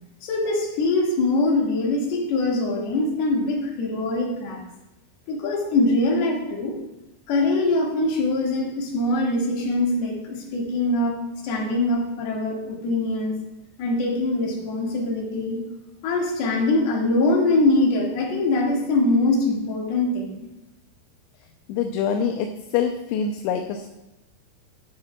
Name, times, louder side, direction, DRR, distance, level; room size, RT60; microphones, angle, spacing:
voice 1, 0.2-4.6 5.3-6.8 7.3-11.2 11.4-13.4 13.8-15.6 16.0-20.4, left 2 dB, 65° left, -2 dB, 3.7 m, -23 dB
voice 2, 21.7-22.5 22.7-23.9, left 7 dB, 80° left, 4 dB, 2.9 m, -25 dB
13.5 x 11.0 x 2.3 m, 0.94 s
omnidirectional pair, 5.3 m